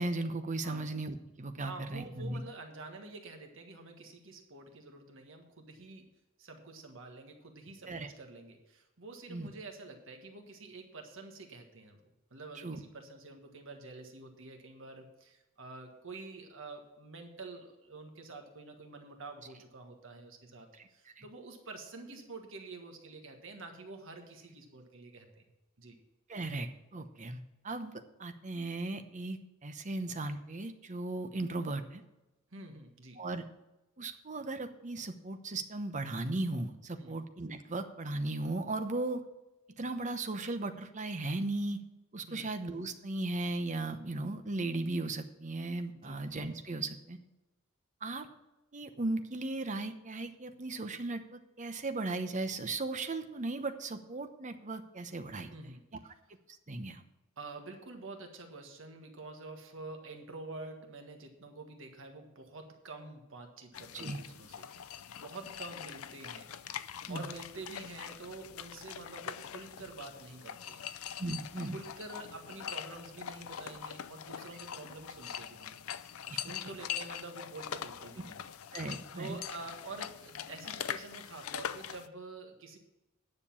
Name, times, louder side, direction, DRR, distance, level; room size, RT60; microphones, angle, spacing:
voice 1, 0.0-2.4 7.9-8.1 9.3-9.5 12.5-12.8 21.2-21.3 26.3-32.0 33.2-33.4 34.0-39.2 39.8-41.8 42.1-47.2 48.0-48.3 48.7-55.5 56.7-57.0 63.9-64.2 67.1-67.3 71.2-71.8 76.3-76.4 78.7-79.4, right 2 dB, 35° right, 8 dB, 0.9 m, -37 dB
voice 2, 1.6-6.0 6.4-12.0 12.3-25.4 25.8-26.0 32.5-33.2 37.0-37.2 42.3-42.5 45.9-46.2 55.5-55.9 57.4-64.7 65.1-71.2 71.7-75.8 76.2-78.8 79.1-82.8, right 3 dB, 65° right, 4 dB, 1.6 m, -48 dB
sound 1, 63.7-82.1, left 9 dB, 85° left, 0.5 m, -43 dB
10.0 x 6.8 x 7.0 m, 0.99 s
head